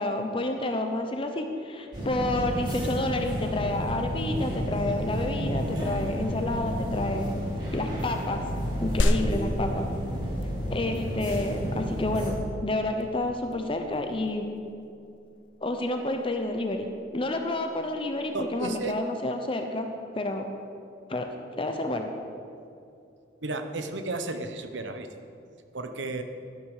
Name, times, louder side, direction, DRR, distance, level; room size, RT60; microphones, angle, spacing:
voice 1, 0.0-7.3 7.7-8.4 8.8-9.9 10.7-14.6 15.6-19.9 20.1-20.5 21.1-21.3 21.6-22.1, left 2 dB, 30° left, 5 dB, 0.8 m, -29 dB
sound 1, 1.9-12.3, equal, 25° right, 3.7 m, -31 dB
sound 2, 9.0-19.0, left 1 dB, 90° left, 0.7 m, -34 dB
voice 2, 18.3-19.0 23.4-25.2 25.7-26.2, right 2 dB, 75° right, 7 dB, 1.0 m, -33 dB
12.0 x 11.5 x 4.9 m, 2.5 s
head